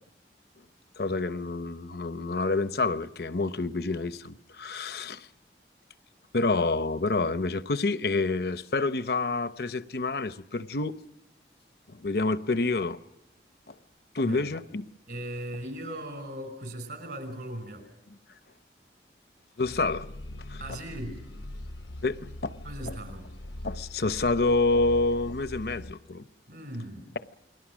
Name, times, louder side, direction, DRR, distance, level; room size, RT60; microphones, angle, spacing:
voice 1, 1.0-5.3 6.3-10.9 11.9-13.0 14.1-14.8 19.6-20.1 20.5-20.6 22.0-22.6 23.6-26.2, left 3 dB, 60° left, 0.8 m, -28 dB
voice 2, 15.1-17.9 20.6-21.2 22.6-23.3 26.5-27.1, right 1 dB, 65° right, 5.5 m, -38 dB
sound 1, 19.6-25.9, left 1 dB, 90° left, 1.0 m, -41 dB
29.0 x 21.0 x 6.2 m
head